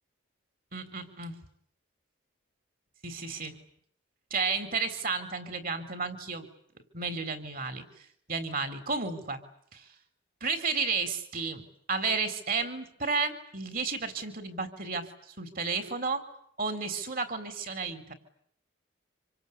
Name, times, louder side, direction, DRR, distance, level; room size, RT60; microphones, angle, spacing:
voice 1, 0.7-1.3 3.0-3.6 4.3-6.5 6.9-7.8 8.3-9.4 9.7-9.8 10.4-15.1 15.4-16.2 16.6-18.1, right 4 dB, 45° right, 10 dB, 3.8 m, -32 dB
27.0 x 26.0 x 8.4 m, 0.66 s
head